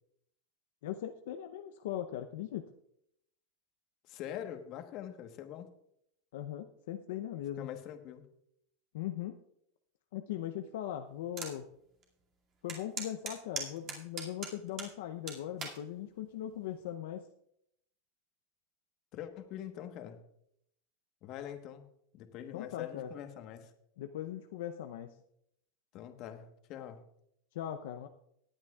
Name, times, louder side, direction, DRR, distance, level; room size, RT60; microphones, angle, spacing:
voice 1, 0.8-2.6 6.3-7.7 8.9-9.4 10.1-11.7 12.6-17.3 22.5-23.1 24.0-25.2 27.5-28.1, left 11 dB, 75° left, 6 dB, 0.6 m, -39 dB
voice 2, 4.1-5.7 7.6-8.2 19.1-20.2 21.2-21.9 22.1-23.7 25.9-27.0, left 10 dB, 45° left, 7 dB, 1.2 m, -44 dB
sound 1, 11.4-11.5 12.0-12.1 12.7-14.9 15.3-15.8 16.5-16.8, right 5 dB, 35° right, 2.3 m, -39 dB
19.0 x 8.8 x 2.4 m, 0.74 s
supercardioid pair, 130°, 0 cm